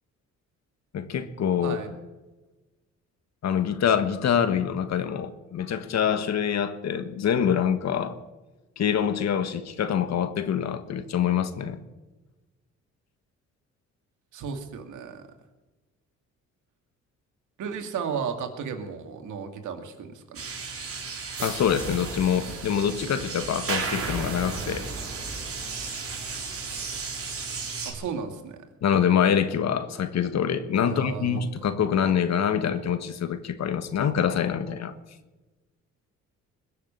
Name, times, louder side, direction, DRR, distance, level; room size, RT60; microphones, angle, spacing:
voice 1, 0.9-1.8 3.4-8.1 8.8-11.8 21.4-24.9 28.8-34.9, left 8 dB, 60° left, 11 dB, 1.5 m, -25 dB
voice 2, 14.3-15.2 17.6-20.4 27.8-28.6 30.8-31.5, right 6 dB, 75° right, 5 dB, 2.4 m, -34 dB
sound 1, 20.3-27.9, right 4 dB, 50° right, 4.0 m, -33 dB
21.5 x 7.3 x 8.8 m, 1.1 s
cardioid pair, 90°, 30 cm